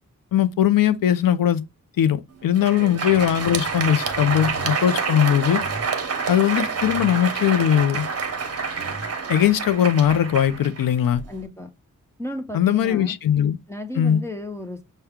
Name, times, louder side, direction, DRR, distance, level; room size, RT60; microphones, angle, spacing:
voice 1, 0.3-1.6 2.0-5.6 6.3-8.1 9.3-11.2 12.5-13.6 13.9-14.2, left 10 dB, 80° left, 0.5 m, -20 dB
Crowd, 2.4-11.4, right 5 dB, 45° right, 0.8 m, -28 dB
sound 1, 2.7-10.5, right 2 dB, 15° right, 0.9 m, -41 dB
voice 2, 11.3-11.7 12.2-13.2 13.7-14.8, left 1 dB, 10° left, 0.6 m, -33 dB
5.8 x 2.2 x 3.5 m
wide cardioid pair, 110°, 33 cm